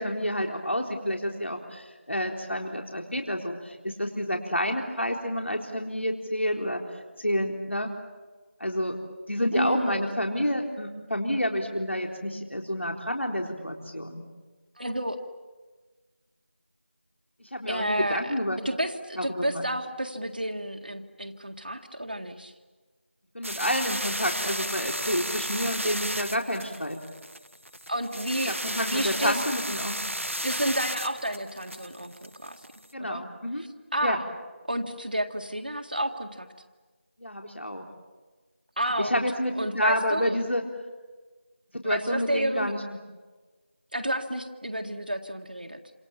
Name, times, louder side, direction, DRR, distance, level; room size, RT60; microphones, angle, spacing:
voice 1, 0.0-6.8 7.2-7.9 8.6-9.0 9.3-14.2 17.4-18.6 19.2-19.6 23.3-27.0 28.4-30.1 32.9-33.6 34.0-34.2 37.2-37.8 39.0-40.6 41.7-42.8, equal, 70° left, 2 dB, 4.0 m, -29 dB
voice 2, 9.5-10.0 14.8-15.2 17.7-18.3 18.6-22.5 27.9-29.4 30.4-32.6 33.0-33.2 33.6-34.3 34.7-36.5 38.8-39.2 39.6-40.4 41.8-42.7 43.9-45.8, right 1 dB, 45° right, 3 dB, 1.9 m, -30 dB
sound 1, 23.4-32.9, equal, 85° right, 1.7 m, -33 dB
29.0 x 27.0 x 7.4 m, 1.3 s
figure-of-eight pair, 175°, 7 cm